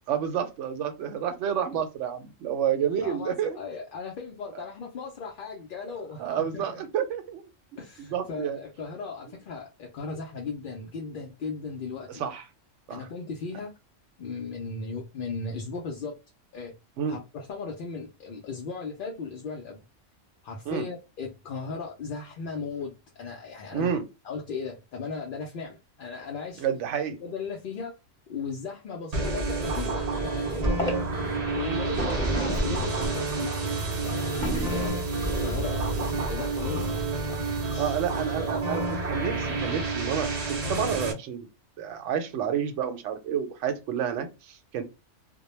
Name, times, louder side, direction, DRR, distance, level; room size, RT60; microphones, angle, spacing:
voice 1, 0.1-3.6 6.2-7.4 8.1-8.6 12.1-12.4 12.9-13.1 17.0-17.2 20.7-20.8 23.7-24.0 26.6-27.1 37.8-40.3 40.7-41.5 41.8-44.8, right 8 dB, 75° right, 0.9 m, -29 dB
voice 2, 3.0-6.8 7.8-12.2 12.9-13.7 14.2-16.2 16.5-16.7 17.1-19.8 20.4-24.0 24.2-26.6 27.2-28.0 28.3-31.0 31.5-33.6 34.0-34.4 34.7-37.4 37.7-38.0, left 4 dB, 60° left, 0.6 m, -37 dB
sound 1, 29.1-41.1, right 3 dB, 50° right, 0.5 m, -29 dB
sound 2, 30.6-30.9 31.9-33.1 34.4-34.9, right 1 dB, 5° left, 0.7 m, -28 dB
2.2 x 2.1 x 2.9 m
omnidirectional pair, 1.3 m